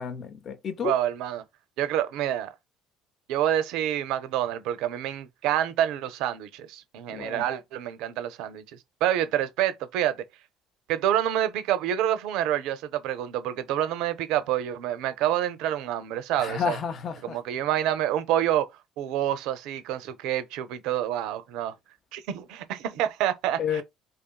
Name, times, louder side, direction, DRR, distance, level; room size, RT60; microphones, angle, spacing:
voice 1, 0.0-0.9 7.1-7.4 16.4-17.4 23.6-23.8, left 7 dB, 50° left, 0.5 m, -30 dB
voice 2, 0.8-1.4 1.8-2.5 3.3-8.6 9.0-10.2 10.9-16.8 17.2-18.7 19.0-21.7 22.1-23.8, right 11 dB, 70° right, 0.4 m, -27 dB
2.6 x 2.3 x 2.2 m
hypercardioid pair, 60°, 0 cm